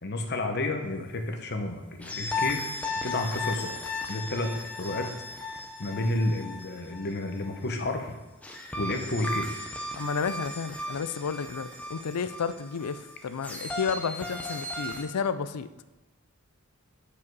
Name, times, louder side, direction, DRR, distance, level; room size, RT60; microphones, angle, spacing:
voice 1, 0.0-2.6 3.0-3.8 4.1-4.5 4.8-5.1 5.8-8.1 8.8-9.5, left 2 dB, 45° left, 5 dB, 0.9 m, -30 dB
sound 1, 2.0-7.6 8.4-15.0, left 2 dB, 5° left, 0.7 m, -36 dB
voice 2, 10.0-15.7, left 6 dB, 90° left, 12 dB, 0.4 m, -31 dB
8.4 x 5.0 x 4.7 m, 1.1 s
head